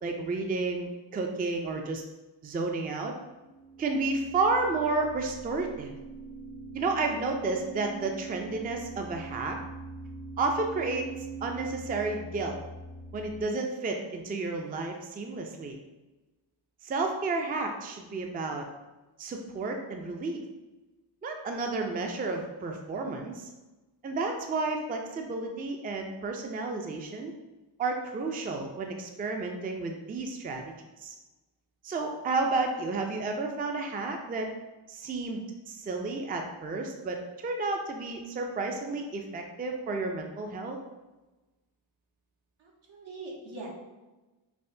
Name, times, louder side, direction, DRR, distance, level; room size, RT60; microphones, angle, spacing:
voice 1, 0.0-2.0 2.4-3.1 3.8-5.9 6.7-9.6 10.4-12.6 13.1-15.8 16.8-18.7 19.2-20.4 21.2-23.5 24.0-27.3 27.8-30.6 31.0-31.2 31.8-34.5 34.9-40.8, right 3 dB, 20° right, 3 dB, 0.4 m, -31 dB
sound 1, 3.3-13.4, right 3 dB, 65° left, 0.6 m, -43 dB
voice 2, 42.6-43.7, right 2 dB, 80° right, -4 dB, 1.2 m, -42 dB
5.5 x 2.1 x 2.6 m, 1.1 s
cardioid pair, 80°, 47 cm